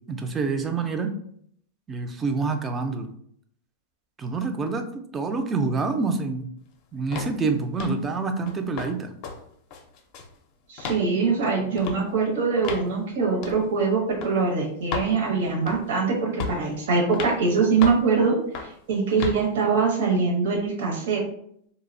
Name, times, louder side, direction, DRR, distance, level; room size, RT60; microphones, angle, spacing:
voice 1, 0.1-1.1 1.9-3.1 4.2-6.5 6.9-9.1, right 4 dB, 20° right, 6 dB, 0.3 m, -27 dB
sound 1, 7.1-7.4 7.8-8.0 8.5-8.9 9.2-9.4 9.7-10.3 10.8-11.0 11.8-12.0 12.6-12.9 13.4-13.6 14.2-14.3 14.9-15.1 15.7-15.9 16.4-16.7 17.1-17.4 17.8-18.1 18.5-18.8 19.2-19.4, left 5 dB, 50° left, 0.4 m, -33 dB
voice 2, 10.7-21.2, right 4 dB, 75° right, 0 dB, 0.7 m, -23 dB
2.6 x 2.0 x 2.5 m, 0.67 s
supercardioid pair, 130°, 0 cm